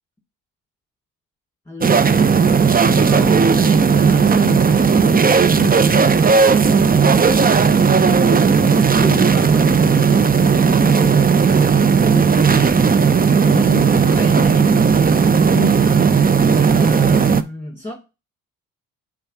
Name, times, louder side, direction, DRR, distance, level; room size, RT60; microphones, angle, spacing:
voice 1, 1.7-2.3 2.8-12.8 13.3-16.1 16.6-17.9, left 3 dB, 5° left, 3.0 m, -32 dB
sound 1, 1.8-17.4, right 6 dB, 20° right, 0.6 m, -14 dB
5.6 x 3.6 x 5.6 m
hypercardioid pair, 45°, 42 cm